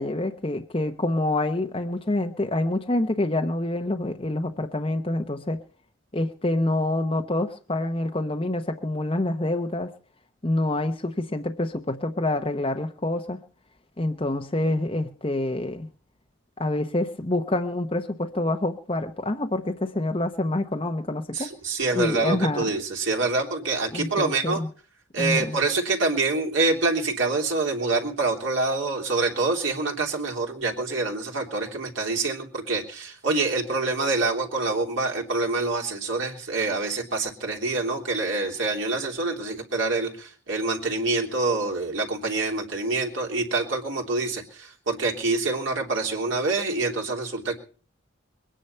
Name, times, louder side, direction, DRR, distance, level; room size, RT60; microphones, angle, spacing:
voice 1, 0.0-5.6 6.1-9.9 10.4-13.4 14.0-15.9 16.6-21.5 21.9-22.7 23.9-24.7 25.2-25.6, left 1 dB, 25° left, 4 dB, 0.9 m, -27 dB
voice 2, 21.3-24.6 25.1-47.6, right 3 dB, 65° right, 1 dB, 3.3 m, -26 dB
22.0 x 10.0 x 5.6 m, 0.42 s
head